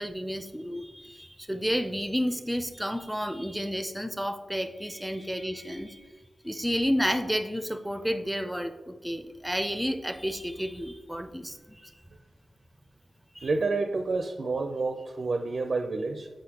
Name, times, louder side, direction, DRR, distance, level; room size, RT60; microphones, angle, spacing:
voice 1, 0.0-6.1 6.4-11.9 13.3-13.5, equal, 5° right, 9 dB, 0.6 m, -31 dB
voice 2, 13.4-16.3, right 3 dB, 65° right, 6 dB, 0.4 m, -29 dB
7.6 x 4.9 x 2.9 m, 1.3 s
cardioid pair, 45°, 0 cm